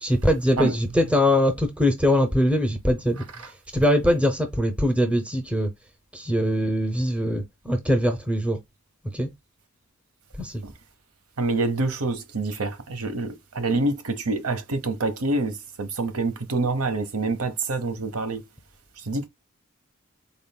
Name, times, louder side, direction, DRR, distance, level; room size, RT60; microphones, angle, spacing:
voice 1, 0.0-5.7 6.1-8.6 9.1-9.3 10.4-10.6, equal, 5° right, 0.6 m, -22 dB
voice 2, 11.4-18.4 19.0-19.3, right 3 dB, 90° right, 0.8 m, -26 dB
3.9 x 3.6 x 2.2 m
head